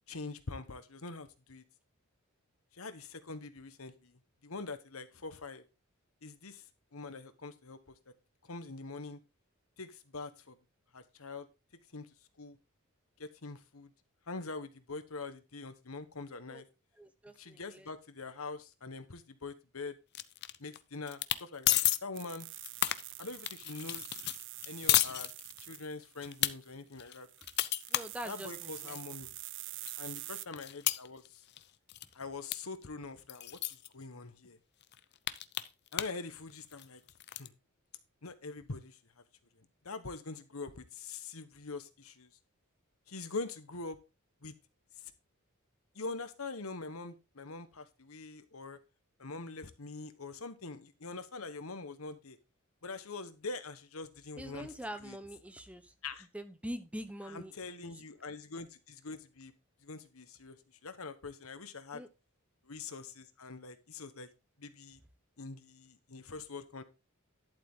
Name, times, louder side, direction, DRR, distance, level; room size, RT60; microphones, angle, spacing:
voice 1, 0.1-1.6 2.7-5.7 6.2-6.6 6.9-7.9 8.5-9.2 9.8-10.5 10.9-11.5 11.9-12.1 12.4-12.6 13.2-13.9 14.3-16.6 17.3-19.9 20.6-22.5 23.2-24.1 24.7-25.3 25.6-27.3 28.2-29.3 30.0-31.4 32.1-33.6 33.9-34.6 35.9-37.0 37.3-37.5 38.2-39.0 39.8-42.3 43.1-44.0 44.4-44.5 45.9-48.8 49.2-52.4 52.8-54.7 55.0-55.2 56.0-56.3 57.3-59.5 59.8-60.6 60.8-62.0 62.6-64.3 64.6-65.0 65.4-66.8, left 3 dB, 80° left, 11 dB, 1.3 m, -44 dB
voice 2, 17.0-17.9 27.9-29.0 54.4-55.9 56.3-57.5 57.8-57.9 61.9-62.1, equal, 5° right, 11 dB, 0.8 m, -44 dB
sound 1, 20.1-20.8 21.1-21.4 21.7-22.0 22.4-25.8 26.2-26.5 27.0-29.0 29.5-29.6 29.9-31.6 31.9-32.1 32.5-32.6 32.8-32.9 33.3-33.9 34.4-34.5 34.8-36.2 36.5-37.5, left 14 dB, 50° left, 0.6 m, -32 dB
sound 2, 22.1-26.7 27.1-30.5, right 18 dB, 55° right, 0.4 m, -46 dB
11.5 x 7.5 x 3.7 m, 0.28 s
head